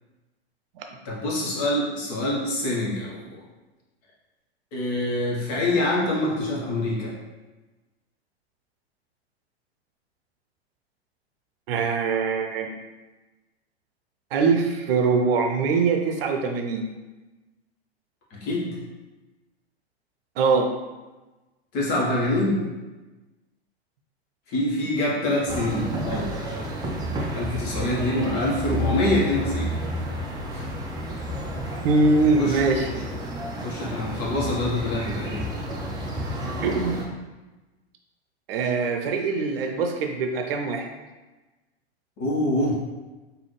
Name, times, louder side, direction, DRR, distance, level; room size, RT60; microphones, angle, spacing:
voice 1, 1.0-3.2 4.7-7.1 18.3-18.7 21.7-22.6 24.5-26.3 27.3-29.7 30.5-30.7 32.4-32.6 33.6-35.4 42.2-42.8, left 1 dB, 45° left, -4 dB, 1.4 m, -25 dB
voice 2, 11.7-12.7 14.3-16.9 20.4-20.7 31.8-32.9 36.4-36.9 38.5-40.9, right 4 dB, 60° right, 4 dB, 0.6 m, -23 dB
sound 1, 25.5-37.1, equal, 15° right, 0.4 m, -31 dB
3.9 x 2.7 x 3.2 m, 1.2 s
hypercardioid pair, 105°, 33 cm